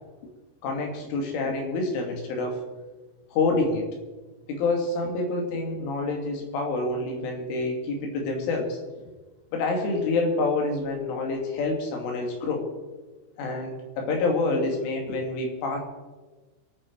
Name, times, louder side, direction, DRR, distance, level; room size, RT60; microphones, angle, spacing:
voice 1, 0.6-2.6 3.3-3.9 4.5-8.8 9.5-12.7 13.4-15.8, left 3 dB, 80° left, 2 dB, 5.1 m, -27 dB
28.0 x 9.4 x 4.7 m, 1.3 s
omnidirectional pair, 5.5 m